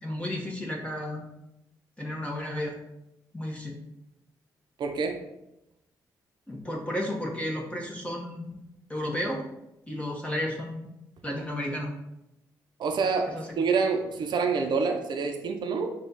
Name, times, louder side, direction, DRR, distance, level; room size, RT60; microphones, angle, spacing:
voice 1, 0.0-1.2 2.0-2.7 3.3-3.8 6.5-8.5 8.9-9.4 9.9-10.8 11.2-11.9 13.3-13.5, left 1 dB, 15° left, -2 dB, 1.1 m, -32 dB
voice 2, 4.8-5.2 12.8-15.9, right 5 dB, 65° right, 4 dB, 0.5 m, -27 dB
4.9 x 2.4 x 4.0 m, 0.90 s
supercardioid pair, 50°, 8 cm